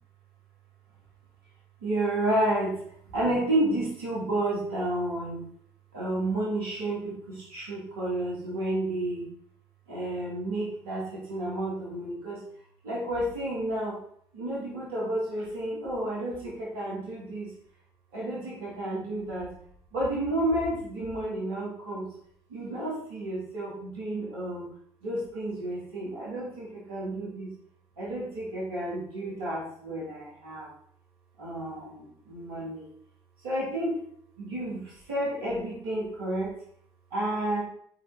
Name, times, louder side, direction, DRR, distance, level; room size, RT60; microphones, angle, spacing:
voice 1, 1.8-2.8 3.1-5.4 5.9-9.3 9.9-12.4 12.8-14.0 14.3-17.5 18.1-19.5 19.9-22.1 22.5-24.7 25.0-27.5 28.0-30.7 31.4-32.9 33.4-34.0 34.4-36.5 37.1-37.6, right 1 dB, 75° right, -6 dB, 3.4 m, -31 dB
10.5 x 5.0 x 4.4 m, 0.63 s
figure-of-eight pair, 45°, 13 cm